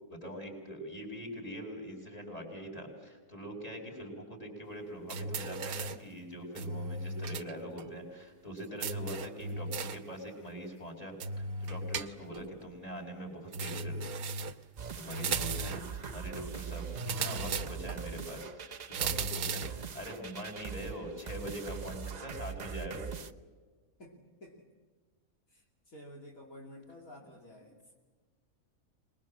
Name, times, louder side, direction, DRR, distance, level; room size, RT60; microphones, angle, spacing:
voice 1, 0.1-14.5 14.9-23.2, equal, 25° left, 3 dB, 5.7 m, -43 dB
sound 1, 5.1-6.1 6.6-7.5 7.8-7.9 8.8-10.1 11.2-12.5 13.5-14.6 15.1-15.9 17.0-18.0 18.9-19.8, right 4 dB, 75° right, 1.4 m, -36 dB
sound 2, 14.8-23.3, right 6 dB, 35° right, 0.7 m, -42 dB
voice 2, 24.0-24.7 25.5-27.8, left 1 dB, 65° left, -1 dB, 3.2 m, -51 dB
26.0 x 21.5 x 7.5 m, 1.4 s
omnidirectional pair, 1.6 m